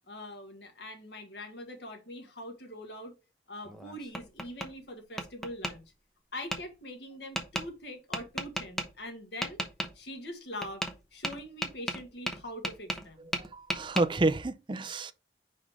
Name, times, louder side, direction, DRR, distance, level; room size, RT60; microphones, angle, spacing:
voice 1, 0.1-3.2 3.5-5.8 6.3-9.6 9.9-10.8 11.1-13.3, left 1 dB, 75° left, 1.8 m, -43 dB
Tap, 3.7-4.7 5.2-5.7 6.5-6.6 7.4-7.7 8.1-8.9 9.4-9.9 10.6-11.0 11.2-13.1 13.3-14.1, equal, ahead, 0.9 m, -34 dB
voice 2, 13.4-15.1, right 2 dB, 30° right, 0.5 m, -29 dB
5.3 x 5.1 x 3.6 m
head